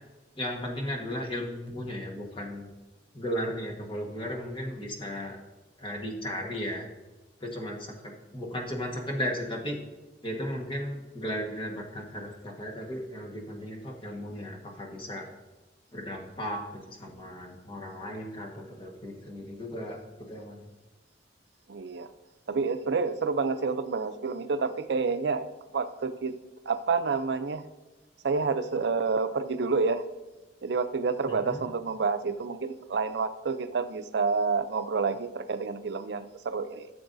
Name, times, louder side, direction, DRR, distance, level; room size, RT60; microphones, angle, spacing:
voice 1, 0.4-2.7 3.1-5.4 5.8-6.8 7.4-9.8 10.2-15.3 15.9-20.6 31.2-31.7, equal, 30° left, 0 dB, 1.4 m, -35 dB
voice 2, 21.7-22.1 22.5-25.5 25.7-26.4 26.7-27.6 28.2-30.0 30.6-36.9, right 4 dB, 70° right, 10 dB, 0.5 m, -29 dB
14.0 x 6.9 x 2.6 m, 1.1 s
head